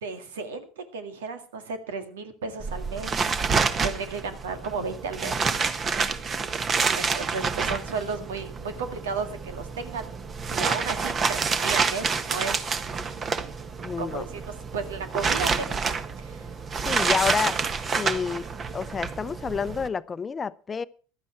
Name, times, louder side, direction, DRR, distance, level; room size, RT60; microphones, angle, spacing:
voice 1, 0.0-5.3 6.9-10.1 10.5-12.7 13.2-13.5 14.0-14.4 14.7-15.8 16.2-16.5, right 5 dB, 85° right, 2.0 m, -34 dB
sound 1, 2.6-19.9, right 5 dB, 35° right, 1.4 m, -28 dB
voice 2, 13.8-14.2 16.8-17.6 18.0-18.5 18.7-20.8, left 6 dB, 30° left, 0.7 m, -29 dB
15.5 x 11.5 x 4.6 m
hypercardioid pair, 80°, 0 cm